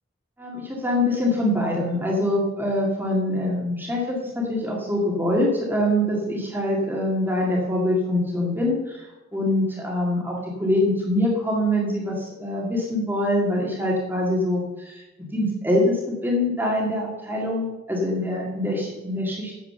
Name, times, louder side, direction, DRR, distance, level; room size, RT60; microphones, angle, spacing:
voice 1, 0.4-9.1 9.3-15.0 15.3-19.5, left 1 dB, 10° right, -3 dB, 2.0 m, -24 dB
9.2 x 7.8 x 6.8 m, 1.0 s
head